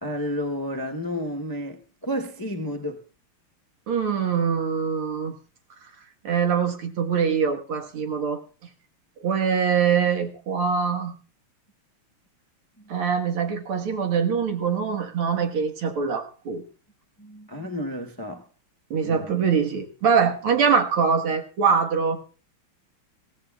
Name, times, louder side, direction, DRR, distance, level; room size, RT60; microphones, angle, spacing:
voice 1, 0.0-3.0 12.8-12.9 17.2-18.5 19.0-19.4, equal, 25° left, 0.4 m, -31 dB
voice 2, 3.9-5.3 6.2-8.4 9.2-11.1 12.9-16.6 18.9-22.2, right 6 dB, 80° right, 2.4 m, -23 dB
23.0 x 16.5 x 2.3 m
omnidirectional pair, 2.3 m